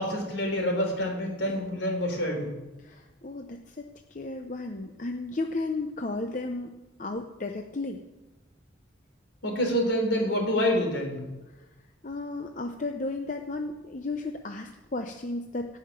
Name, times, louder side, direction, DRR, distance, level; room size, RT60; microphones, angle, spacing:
voice 1, 0.0-2.5 9.4-11.2, equal, 70° left, 2 dB, 3.8 m, -27 dB
voice 2, 2.8-6.7 7.0-8.0 12.0-15.8, left 2 dB, 40° left, 4 dB, 0.7 m, -34 dB
16.5 x 5.8 x 8.8 m, 1.1 s
head